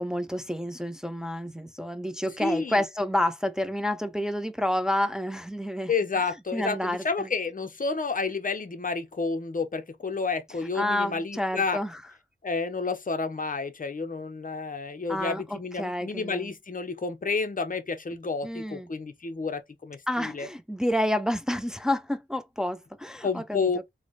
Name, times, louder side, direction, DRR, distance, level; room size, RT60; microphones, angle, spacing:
voice 1, 0.0-5.9 6.5-7.3 10.7-12.0 15.1-16.5 18.4-18.9 20.1-23.7, left 1 dB, 5° right, 0.4 m, -29 dB
voice 2, 2.4-2.8 5.9-11.8 12.4-20.5 23.2-23.8, left 4 dB, 45° left, 0.6 m, -30 dB
3.8 x 2.0 x 3.0 m
wide cardioid pair, 60°, 20 cm